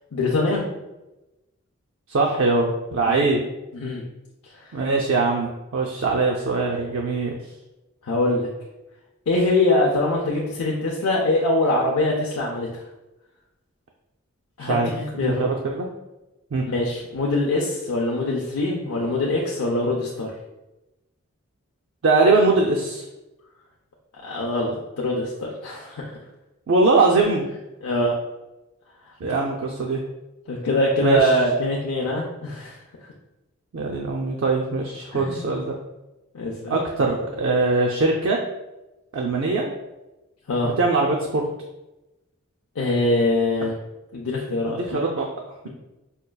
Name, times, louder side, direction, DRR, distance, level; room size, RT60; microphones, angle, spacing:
voice 1, 0.1-0.7 3.0-3.2 3.7-4.0 4.5-4.7 8.0-8.5 9.3-12.8 14.6-15.5 16.7-20.3 24.2-26.2 27.8-28.1 30.5-32.8 35.1-35.5 36.3-36.7 40.5-40.7 42.8-43.8 44.1-45.0, left 1 dB, 90° left, -3 dB, 0.5 m, -23 dB
voice 2, 2.1-3.4 4.7-7.4 14.7-14.9 15.1-15.9 16.5-16.6 22.0-23.1 26.7-27.4 29.2-30.0 31.0-31.3 33.7-35.7 36.7-38.4 39.1-39.7 40.6-41.4 44.7-45.3, right 3 dB, 60° right, -1 dB, 0.4 m, -21 dB
5.2 x 2.3 x 2.2 m, 1.0 s
head